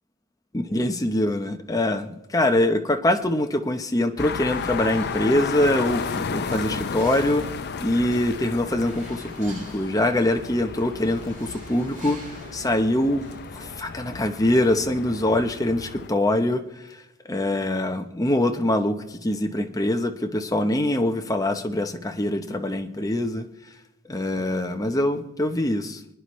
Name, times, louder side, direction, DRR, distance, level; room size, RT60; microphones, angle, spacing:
voice 1, 0.5-7.4 7.8-12.2 12.5-13.2 13.5-16.6 17.3-23.4 24.1-26.0, left 1 dB, 15° left, 5 dB, 0.7 m, -24 dB
sound 1, 4.2-16.1, left 5 dB, 50° left, 0.5 m, -33 dB
sound 2, 4.3-13.9, right 1 dB, 35° right, 6.4 m, -45 dB
27.5 x 9.9 x 3.1 m, 0.93 s
head